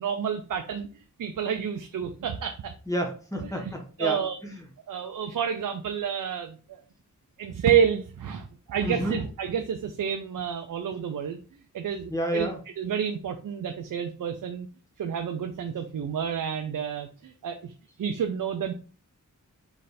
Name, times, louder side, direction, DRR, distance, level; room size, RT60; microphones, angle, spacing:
voice 1, 0.0-2.7 4.0-4.4 4.9-6.8 7.4-11.4 11.7-12.5 12.8-14.7 15.0-17.7 18.0-18.7, right 8 dB, 75° right, 6 dB, 0.5 m, -29 dB
voice 2, 2.9-4.6 8.8-9.2 12.1-12.6, equal, 10° left, 2 dB, 1.1 m, -30 dB
3.5 x 3.2 x 4.1 m, 0.38 s
wide cardioid pair, 125°, 32 cm